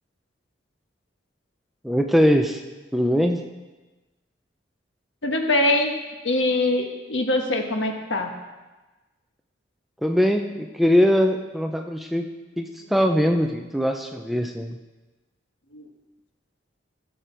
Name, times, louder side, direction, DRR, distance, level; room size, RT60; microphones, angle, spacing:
voice 1, 1.8-2.6 2.9-3.4 10.0-12.3 12.6-14.8, equal, ahead, 4 dB, 0.5 m, -21 dB
voice 2, 5.2-5.9 6.2-8.3 15.7-15.9, left 2 dB, 80° left, 4 dB, 1.3 m, -23 dB
15.0 x 6.8 x 4.5 m, 1.2 s
head